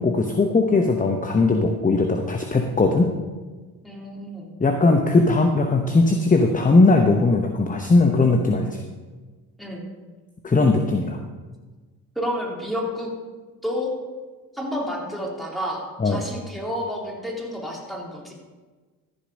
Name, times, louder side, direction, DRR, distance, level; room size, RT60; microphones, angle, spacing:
voice 1, 0.0-3.1 4.6-8.8 10.4-11.2 16.0-16.2, left 3 dB, 15° left, 5 dB, 0.9 m, -19 dB
voice 2, 3.8-4.5 9.6-9.9 12.2-13.1 13.6-13.9 14.5-18.3, equal, ahead, -3 dB, 3.5 m, -30 dB
14.0 x 5.3 x 5.2 m, 1.3 s
hypercardioid pair, 55°, 46 cm